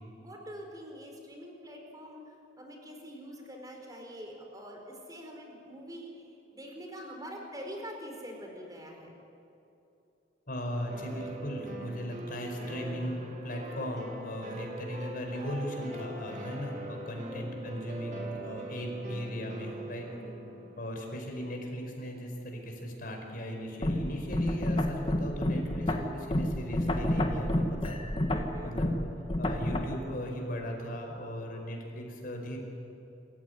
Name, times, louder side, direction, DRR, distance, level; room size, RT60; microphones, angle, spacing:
voice 1, 0.2-2.2 2.6-6.1 6.5-9.1 17.2-17.5 20.1-20.6 28.3-28.8, equal, 20° right, 2 dB, 4.5 m, -45 dB
voice 2, 10.5-20.1 20.8-28.0 28.6-28.9 29.4-32.6, equal, 50° left, 2 dB, 5.1 m, -37 dB
sound 1, 10.9-20.8, right 1 dB, 40° right, 2.6 m, -42 dB
sound 2, 23.8-29.8, left 1 dB, 30° left, 1.8 m, -29 dB
27.0 x 15.0 x 9.8 m, 2.9 s
head